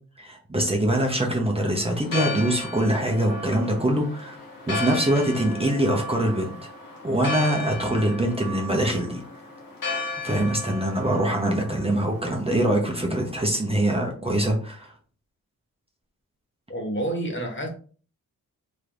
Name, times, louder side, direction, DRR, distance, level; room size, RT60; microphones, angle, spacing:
voice 1, 0.2-4.4 4.7-6.5 7.0-9.2 10.2-14.9, right 1 dB, 15° right, 0 dB, 0.9 m, -23 dB
Church bell, 1.9-13.5, left 2 dB, 70° left, 1.2 m, -35 dB
voice 2, 16.7-17.7, right 1 dB, 35° left, 1 dB, 1.1 m, -28 dB
3.1 x 3.1 x 2.6 m, 0.41 s
supercardioid pair, 40°, 35 cm